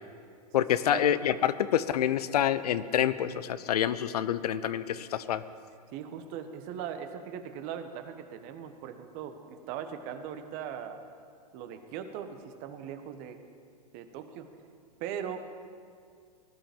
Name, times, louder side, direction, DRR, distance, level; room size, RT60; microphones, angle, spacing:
voice 1, 0.5-5.4, left 10 dB, 70° left, 15 dB, 0.7 m, -27 dB
voice 2, 5.9-11.0 11.5-13.4 13.9-14.5 15.0-15.4, right 8 dB, 45° right, 8 dB, 1.4 m, -39 dB
19.5 x 11.5 x 5.2 m, 2.2 s
hypercardioid pair, 105°, 21 cm